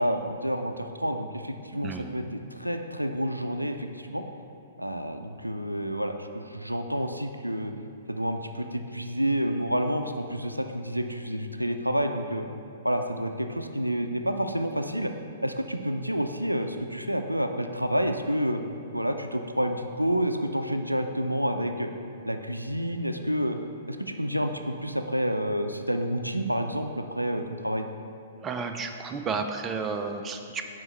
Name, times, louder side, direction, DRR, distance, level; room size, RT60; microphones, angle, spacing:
voice 1, 0.0-4.2 4.8-7.7 8.1-12.4 12.8-15.1 15.4-18.6 18.9-21.9 22.2-27.9, equal, 90° right, 6 dB, 0.4 m, -29 dB
voice 2, 28.4-30.6, right 4 dB, 15° right, 5 dB, 0.4 m, -32 dB
6.1 x 4.5 x 4.5 m, 2.7 s
figure-of-eight pair, 110°, 0 cm